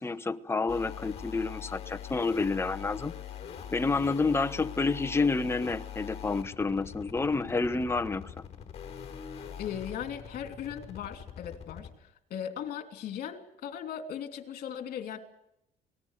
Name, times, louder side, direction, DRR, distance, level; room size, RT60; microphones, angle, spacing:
voice 1, 0.0-3.1 3.7-8.4, left 3 dB, 15° left, 1.0 m, -29 dB
sound 1, 0.7-11.9, left 8 dB, 40° left, 4.7 m, -43 dB
voice 2, 9.6-15.2, left 9 dB, 65° left, 2.9 m, -38 dB
27.5 x 19.5 x 6.5 m
cardioid pair, 110°, 17 cm